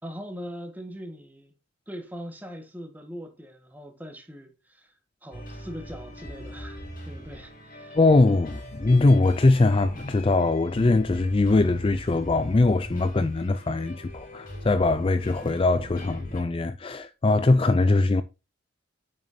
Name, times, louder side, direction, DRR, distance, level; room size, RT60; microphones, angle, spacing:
voice 1, 0.0-1.5 1.9-4.9 5.2-8.0, equal, 10° right, 1.6 m, -41 dB
sound 1, 5.3-16.4, equal, 45° left, 3.0 m, -41 dB
voice 2, 8.0-18.2, left 2 dB, 30° left, 0.4 m, -21 dB
8.6 x 6.4 x 2.8 m
head